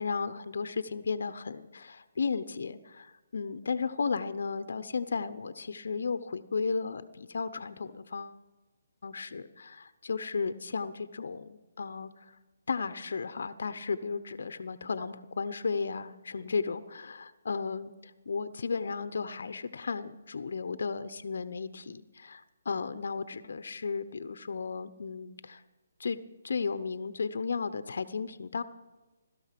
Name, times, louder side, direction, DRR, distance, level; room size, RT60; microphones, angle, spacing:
voice 1, 0.0-8.4 9.0-12.1 12.7-17.9 18.3-22.4 22.7-25.6 26.0-26.2 26.4-28.6, left 5 dB, 70° left, 13 dB, 0.8 m, -34 dB
16.5 x 13.0 x 5.9 m, 1.2 s
hypercardioid pair, 160°, 0 cm